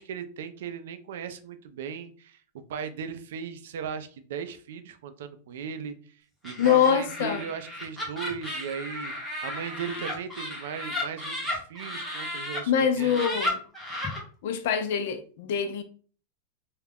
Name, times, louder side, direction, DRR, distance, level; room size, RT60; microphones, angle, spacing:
voice 1, 0.0-13.1, right 7 dB, 80° right, 0.4 m, -37 dB
Laughter, 6.4-12.6 13.0-14.2, left 1 dB, 5° left, 0.8 m, -34 dB
voice 2, 6.6-7.4 12.7-13.6 14.4-15.8, left 8 dB, 70° left, 0.4 m, -24 dB
2.3 x 2.0 x 3.4 m
supercardioid pair, 160°, 0 cm